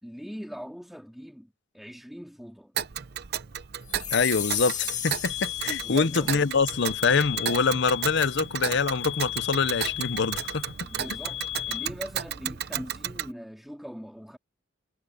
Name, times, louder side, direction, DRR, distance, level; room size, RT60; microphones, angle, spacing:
voice 1, 0.0-2.7 5.8-6.4 10.8-14.4, equal, ahead, 3.6 m, -41 dB
Tick, 2.8-13.3, right 9 dB, 55° right, 0.7 m, -34 dB
sound 1, 3.9-6.4, left 9 dB, 40° left, 2.1 m, -33 dB
voice 2, 4.1-10.6, left 4 dB, 65° left, 0.8 m, -25 dB
sound 2, 5.3-11.9, left 14 dB, 85° left, 7.0 m, -36 dB
head